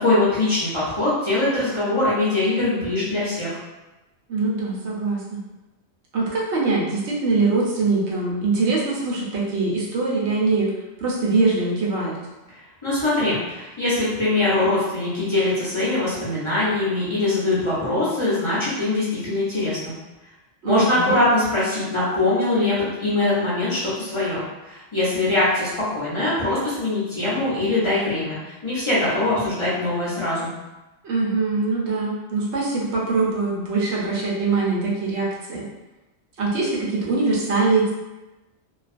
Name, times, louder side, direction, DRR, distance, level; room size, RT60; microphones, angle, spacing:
voice 1, 0.0-3.6 12.8-19.9 20.6-30.5, left 2 dB, 35° left, -9 dB, 0.6 m, -22 dB
voice 2, 4.3-5.4 6.1-10.7 11.0-12.2 20.6-21.2 31.0-35.6 36.4-37.9, right 3 dB, 85° right, -4 dB, 1.0 m, -23 dB
2.4 x 2.3 x 2.4 m, 1.0 s
omnidirectional pair, 1.1 m